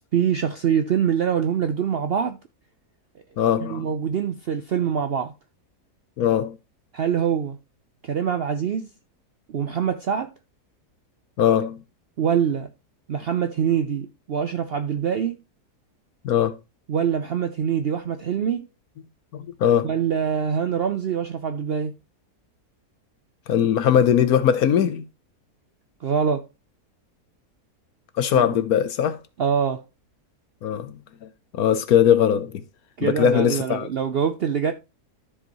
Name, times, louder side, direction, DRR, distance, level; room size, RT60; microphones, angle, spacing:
voice 1, 0.1-2.4 3.6-5.3 6.9-7.6 8.0-8.9 9.5-10.3 12.2-12.7 13.1-15.4 16.9-18.7 19.8-21.9 26.0-26.5 28.3-28.5 29.4-29.8 33.0-34.7, right 8 dB, 70° right, 0.5 m, -24 dB
voice 2, 3.4-3.9 6.2-6.5 11.4-11.8 16.2-16.6 19.3-19.9 23.5-25.1 28.2-29.2 30.6-31.3 31.5-32.6 33.0-33.9, left 9 dB, 70° left, 1.1 m, -20 dB
13.5 x 4.9 x 2.9 m
omnidirectional pair, 1.7 m